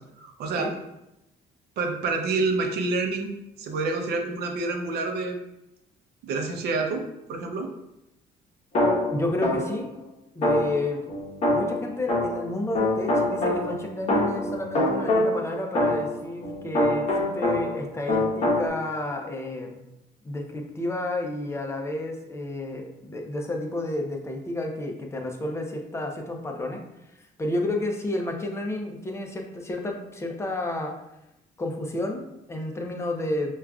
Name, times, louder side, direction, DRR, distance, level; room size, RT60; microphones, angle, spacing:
voice 1, 0.2-0.7 1.8-3.3 3.6-5.4 6.2-7.0 7.3-7.7, right 3 dB, 75° right, 3 dB, 0.6 m, -27 dB
sound 1, 8.7-9.9 10.4-12.5 12.7-17.8 18.1-18.7, left 1 dB, 40° left, 0.9 m, -25 dB
voice 2, 9.1-9.9 10.3-11.0 11.5-19.8 20.2-26.8 27.4-30.9 31.6-33.5, left 1 dB, 15° left, 2 dB, 0.6 m, -31 dB
4.9 x 2.3 x 2.3 m, 0.88 s
cardioid pair, 110°, 17 cm